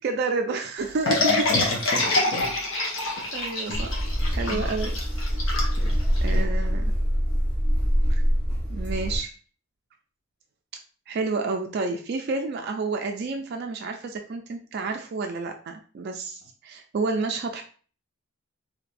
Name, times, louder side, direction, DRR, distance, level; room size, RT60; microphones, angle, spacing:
voice 1, 0.0-1.4 3.3-3.9 4.3-4.9 6.2-6.9 8.1-8.2 8.7-9.3 11.1-17.6, right 3 dB, 50° right, 4 dB, 0.3 m, -30 dB
sound 1, 1.1-6.4, left 2 dB, 70° left, 0.9 m, -26 dB
voice 2, 1.2-2.5 3.2-3.8 4.5-4.7 5.6-6.5, left 2 dB, 55° left, 0 dB, 0.5 m, -36 dB
sound 2, 3.7-9.2, equal, 25° left, 1.2 m, -24 dB
3.3 x 2.8 x 2.5 m, 0.40 s
head